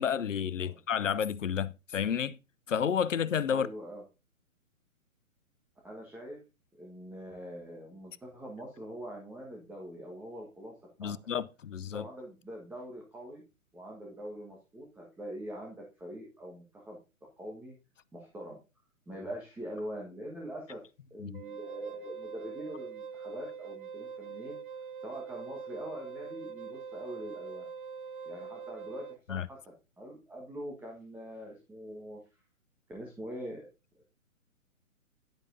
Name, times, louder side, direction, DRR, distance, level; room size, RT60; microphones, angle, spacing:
voice 1, 0.0-2.4 2.7-3.7 11.0-12.0 21.2-21.4 29.3-29.5, left 8 dB, 60° left, 0.8 m, -31 dB
voice 2, 3.5-4.0 5.8-6.4 6.8-10.7 11.0-11.1 11.9-13.4 13.7-17.0 17.4-17.7 18.1-18.6 19.1-20.8 21.1-24.6 25.0-27.6 28.2-32.2 32.9-33.7 33.9-34.0, equal, 5° right, 1.5 m, -43 dB
Wind instrument woodwind instrument, 21.3-29.2, right 6 dB, 40° right, 0.4 m, -43 dB
10.5 x 9.8 x 2.7 m
figure-of-eight pair, 130°, 42 cm